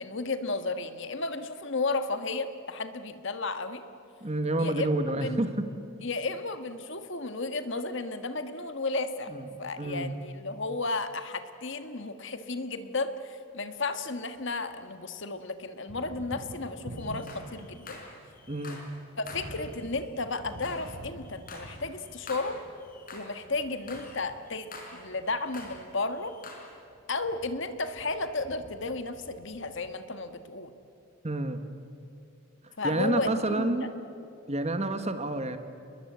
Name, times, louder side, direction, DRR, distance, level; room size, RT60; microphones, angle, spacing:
voice 1, 0.0-3.8 4.6-5.4 6.0-18.0 19.2-22.6 23.1-26.3 27.1-30.7 32.8-33.9, left 3 dB, 60° left, 9 dB, 1.6 m, -33 dB
voice 2, 4.2-5.6 9.3-9.4 9.8-10.1 18.5-18.8 31.2-31.6 32.8-33.9 34.5-35.6, right 1 dB, 30° right, 9 dB, 1.5 m, -29 dB
Thunder, 13.6-14.8 15.1-30.4, equal, 55° right, 3.3 m, -48 dB
sound 1, 17.0-19.0 19.3-23.4 23.6-25.8 26.1-26.7, left 3 dB, 40° left, 5.0 m, -47 dB
29.0 x 21.5 x 8.1 m, 2.7 s
head